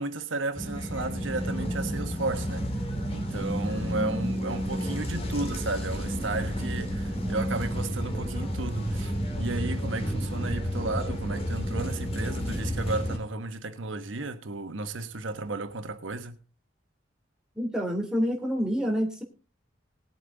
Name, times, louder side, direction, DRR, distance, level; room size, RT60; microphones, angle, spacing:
voice 1, 0.0-2.8 3.1-16.4, right 3 dB, 80° right, 1.1 m, -33 dB
sound 1, 0.5-13.2, equal, 30° left, 2.5 m, -31 dB
voice 2, 17.5-19.2, equal, 5° right, 3.1 m, -27 dB
19.5 x 8.4 x 3.9 m
head